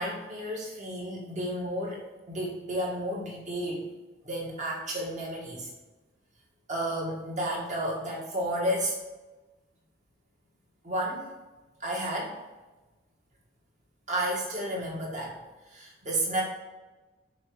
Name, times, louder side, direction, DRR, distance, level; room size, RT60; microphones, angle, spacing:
voice 1, 0.0-3.9 4.2-5.7 6.7-9.0 10.8-11.3 11.8-12.3 14.1-15.4 15.7-16.4, right 1 dB, 35° right, -3 dB, 1.9 m, -32 dB
6.2 x 4.7 x 4.8 m, 1.1 s
head